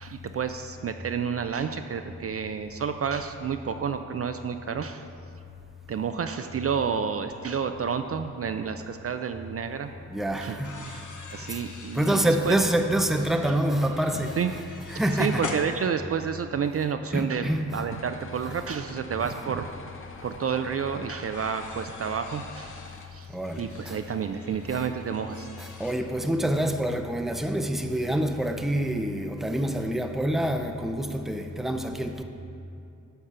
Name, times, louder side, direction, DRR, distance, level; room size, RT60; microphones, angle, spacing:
voice 1, 0.0-5.1 5.9-9.9 10.4-11.0 11.3-12.6 13.4-13.5 14.4-14.5 15.2-19.7 20.2-22.7 23.1-23.3 23.6-25.5, right 7 dB, 45° right, 7 dB, 0.4 m, -30 dB
sound 1, 9.2-9.3 10.4-16.4 17.7-17.8 19.6-19.7 20.0-20.1 21.2-25.9, left 3 dB, 70° left, 1.0 m, -43 dB
voice 2, 10.1-10.7 11.9-14.4 14.9-15.5 17.1-17.7 23.3-24.0 24.7-24.8 25.6-32.2, right 1 dB, ahead, 6 dB, 0.6 m, -26 dB
sound 2, 17.9-23.1, left 4 dB, 40° left, 0.7 m, -46 dB
10.0 x 3.6 x 6.7 m, 2.6 s
cardioid pair, 55°, 32 cm